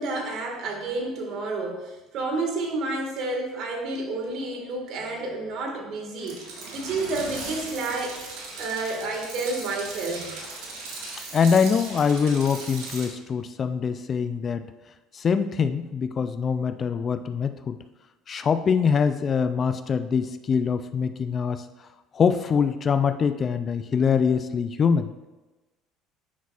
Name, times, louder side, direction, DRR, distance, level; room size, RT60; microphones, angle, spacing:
voice 1, 0.0-6.4 6.7-8.2 8.6-10.3, right 3 dB, 60° right, 1 dB, 1.7 m, -30 dB
sound 1, 6.2-13.1, right 3 dB, 75° right, 1.7 m, -38 dB
voice 2, 11.3-14.7 15.1-17.8 18.3-21.7 22.1-25.1, left 6 dB, 40° left, 11 dB, 0.4 m, -24 dB
9.4 x 6.0 x 2.4 m, 1.1 s
supercardioid pair, 80°, 0 cm